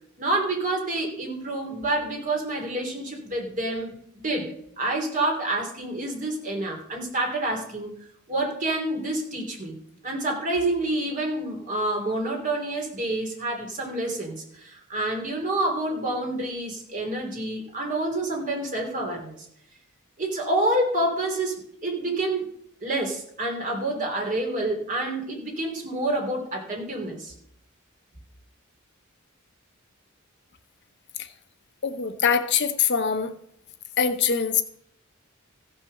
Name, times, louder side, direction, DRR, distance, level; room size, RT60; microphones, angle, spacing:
voice 1, 0.2-9.8 10.0-19.5 20.2-22.5 22.8-27.3, right 2 dB, 40° right, 1 dB, 3.1 m, -28 dB
voice 2, 31.8-33.3 34.0-34.6, left 6 dB, 55° left, 8 dB, 0.9 m, -23 dB
15.5 x 6.0 x 6.5 m, 0.69 s
head